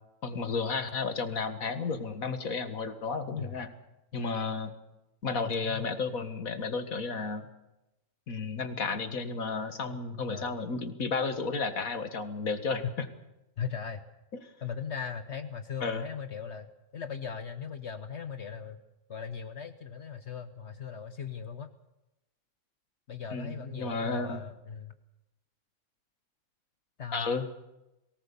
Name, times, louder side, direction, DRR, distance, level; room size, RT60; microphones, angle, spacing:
voice 1, 0.2-3.7 4.1-4.7 5.2-7.5 8.3-13.1 15.8-16.0 23.3-24.4 27.1-27.5, left 4 dB, 85° left, 8 dB, 2.1 m, -32 dB
voice 2, 5.3-5.9 10.3-10.6 12.8-12.9 13.6-14.0 14.6-16.7 16.9-18.8 19.1-21.7 23.1-24.9 27.0-27.3, left 7 dB, 55° left, 9 dB, 1.3 m, -38 dB
23.0 x 18.5 x 7.0 m, 0.95 s
omnidirectional pair, 1.4 m